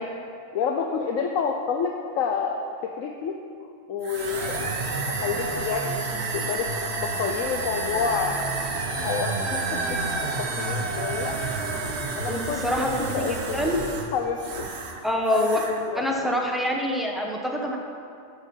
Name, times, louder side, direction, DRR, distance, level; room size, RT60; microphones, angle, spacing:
voice 1, 0.5-2.7 3.0-3.3 3.9-4.7 5.1-6.7 7.0-8.5 9.0-9.6 10.4-11.3 12.2-13.8 14.1-14.7 15.3-15.5 15.9-16.2, left 6 dB, 90° left, 2 dB, 1.1 m, -29 dB
sound 1, 4.0-15.0 15.3-15.8, right 3 dB, 55° right, 1.3 m, -30 dB
voice 2, 12.3-13.8 15.0-15.6 15.9-17.8, left 1 dB, ahead, -1 dB, 1.3 m, -26 dB
13.5 x 6.0 x 7.3 m, 2.4 s
omnidirectional pair, 1.3 m